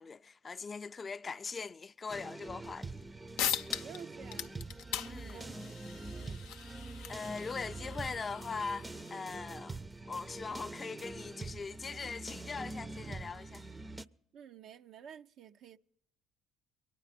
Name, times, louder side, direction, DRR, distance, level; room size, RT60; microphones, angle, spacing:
voice 1, 0.0-3.1 5.1-5.4 7.1-9.8 10.1-13.6, left 5 dB, 35° left, 0.5 m, -41 dB
sound 1, 2.1-14.0, right 2 dB, 20° right, 0.5 m, -45 dB
sound 2, 3.0-3.1 3.4-4.0 4.3-9.4, left 9 dB, 85° left, 0.6 m, -40 dB
voice 2, 3.8-4.5 5.2-5.7 6.2-6.4 14.3-15.8, right 8 dB, 65° right, 0.5 m, -51 dB
22.5 x 9.8 x 4.3 m
supercardioid pair, 70°, 0 cm